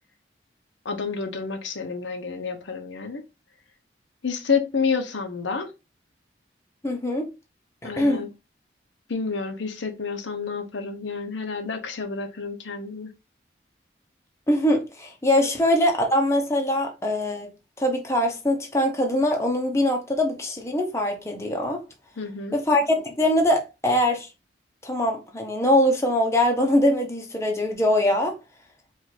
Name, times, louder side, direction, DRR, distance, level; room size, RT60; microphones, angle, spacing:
voice 1, 0.8-3.2 4.2-5.7 7.8-8.3 9.1-13.1 15.4-15.5 22.2-22.6, left 5 dB, 90° left, 0.8 m, -29 dB
voice 2, 6.8-7.3 7.8-8.2 14.5-17.5 17.8-21.8 22.5-24.3 24.8-28.3, left 1 dB, 15° left, 0.8 m, -22 dB
4.7 x 2.5 x 4.1 m
head